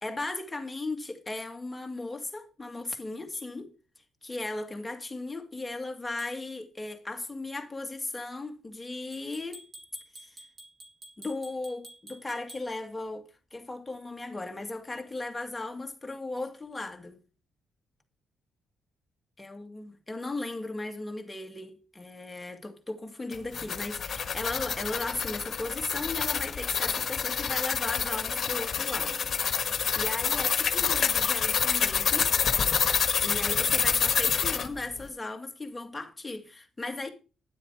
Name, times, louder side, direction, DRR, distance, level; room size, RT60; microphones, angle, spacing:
voice 1, 0.0-3.7 4.2-9.7 10.2-10.4 11.2-17.2 19.4-29.2 30.0-32.3 33.2-37.1, left 2 dB, 15° left, 2.1 m, -36 dB
sound 1, 3.3-3.5 6.2-6.4 9.1-12.7, right 1 dB, 40° right, 2.9 m, -49 dB
sound 2, 23.3-34.7, left 7 dB, 50° left, 1.5 m, -27 dB
11.0 x 7.6 x 4.9 m
cardioid pair, 90°, 0 cm